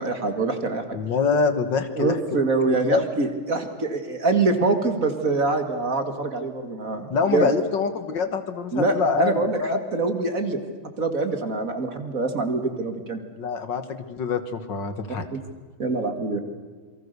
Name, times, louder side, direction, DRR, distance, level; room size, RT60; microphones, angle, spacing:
voice 1, 0.0-1.0 2.0-7.5 8.7-10.6 10.8-13.2 15.3-15.4 15.8-16.4, right 3 dB, 40° right, 7 dB, 2.4 m, -25 dB
voice 2, 0.9-2.2 2.7-3.0 7.1-9.8 13.4-15.3, left 5 dB, 60° left, 10 dB, 2.0 m, -25 dB
28.0 x 23.5 x 6.8 m, 1.5 s
omnidirectional pair, 2.2 m